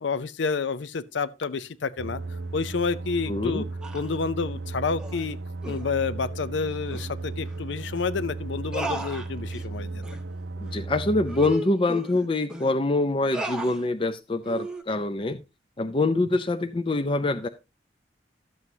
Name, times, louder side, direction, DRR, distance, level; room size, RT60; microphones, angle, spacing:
voice 1, 0.0-2.2 2.5-3.7 3.9-5.4 5.7-10.0, left 4 dB, 75° left, 0.5 m, -29 dB
sound 1, 2.0-11.6, right 3 dB, 75° right, 0.5 m, -35 dB
voice 2, 3.3-3.6 10.6-15.4 15.8-17.5, left 2 dB, 30° left, 0.4 m, -25 dB
sound 2, 3.8-4.2 5.0-5.3 5.6-5.9 6.9-7.1 7.5-7.6 7.9-8.1 8.7-9.7 10.0-10.2 10.7-10.8 11.3-12.7 13.3-13.8 14.4-14.8, right 1 dB, 5° right, 0.8 m, -35 dB
12.0 x 7.8 x 2.7 m
head